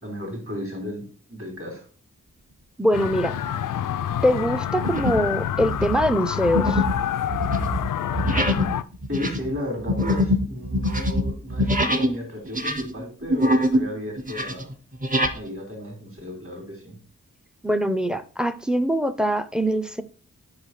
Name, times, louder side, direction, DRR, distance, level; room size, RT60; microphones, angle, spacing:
voice 1, 0.0-1.8 9.1-14.7 15.3-17.0, left 1 dB, 40° right, 3.1 m, -34 dB
voice 2, 2.8-3.3 4.2-6.8 17.6-20.0, equal, ahead, 0.6 m, -23 dB
sound 1, 2.9-8.8, left 10 dB, 75° left, 0.5 m, -28 dB
sound 2, 3.1-3.5 4.0-4.2 4.8-5.3 5.6-12.2 12.5-13.9 14.2-15.4, equal, 25° right, 0.9 m, -24 dB
5.0 x 4.8 x 5.6 m
cardioid pair, 55°, 32 cm